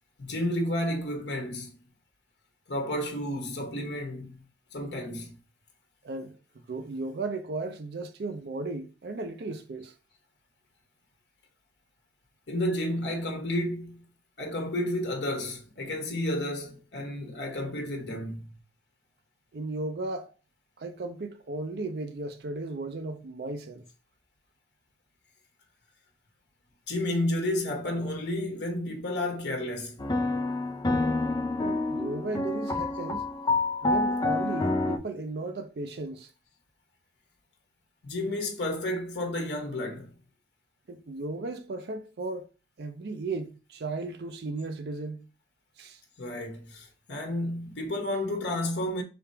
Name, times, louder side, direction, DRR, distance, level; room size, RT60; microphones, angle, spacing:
voice 1, 0.2-1.7 2.7-4.3 4.7-5.3 12.5-14.0 14.4-18.5 26.9-30.0 38.0-40.1 46.2-49.0, left 1 dB, 75° left, 1.0 m, -31 dB
voice 2, 6.0-9.9 19.5-20.3 20.8-23.8 31.6-33.3 33.8-36.3 40.9-42.5 42.8-45.3 45.8-46.0, right 3 dB, 65° right, 0.5 m, -35 dB
sound 1, 30.0-35.0, left 2 dB, 20° left, 0.4 m, -28 dB
3.5 x 2.9 x 4.5 m
head